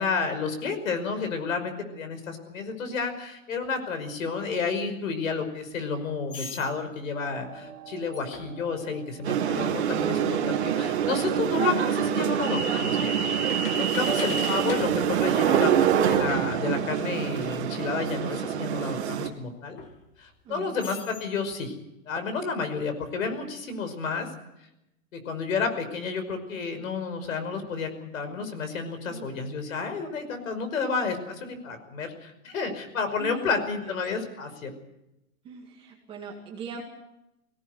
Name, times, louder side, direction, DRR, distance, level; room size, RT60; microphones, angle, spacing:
voice 1, 0.0-13.2 13.6-19.8 20.2-21.8 22.1-24.3 25.1-34.7, left 4 dB, 60° left, 8 dB, 5.6 m, -31 dB
sound 1, 4.4-4.6 6.3-6.7 8.1-8.7 10.8-10.9 11.5-16.1 17.5-17.6 18.1-19.4 19.8-20.4 20.8-21.3, left 5 dB, 35° left, 2.4 m, -43 dB
sound 2, 7.2-17.3, right 8 dB, 75° right, 3.0 m, -40 dB
sound 3, 9.2-19.3, right 8 dB, 45° right, 2.6 m, -26 dB
voice 2, 20.4-20.9 29.1-29.3 33.2-33.5 33.8-33.9 35.4-36.8, right 5 dB, 10° right, -1 dB, 2.2 m, -42 dB
22.0 x 18.0 x 8.0 m, 0.86 s
hypercardioid pair, 180°, 45 cm